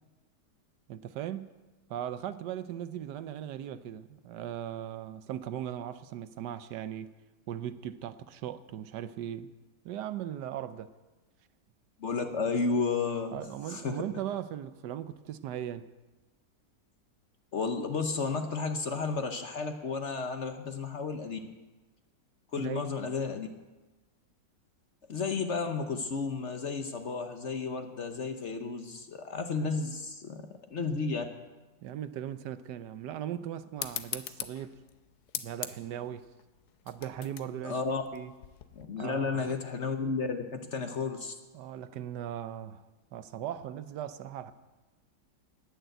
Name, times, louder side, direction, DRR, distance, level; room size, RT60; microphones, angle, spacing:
voice 1, 0.9-1.6 1.9-7.1 7.5-9.5 9.8-10.9 13.3-15.9 22.6-22.9 31.8-34.8 35.4-36.3 36.9-37.8 38.1-38.3 39.0-39.6 41.5-42.8 43.1-44.5, right 10 dB, 75° right, 1.2 m, -38 dB
voice 2, 12.0-13.4 13.7-14.0 17.5-21.4 22.5-23.5 25.1-30.4 30.7-31.2 37.6-38.0 38.8-41.3, left 4 dB, 50° left, 1.0 m, -32 dB
sound 1, 33.8-38.9, left 10 dB, 70° left, 1.3 m, -41 dB
19.5 x 6.7 x 7.9 m
omnidirectional pair, 1.9 m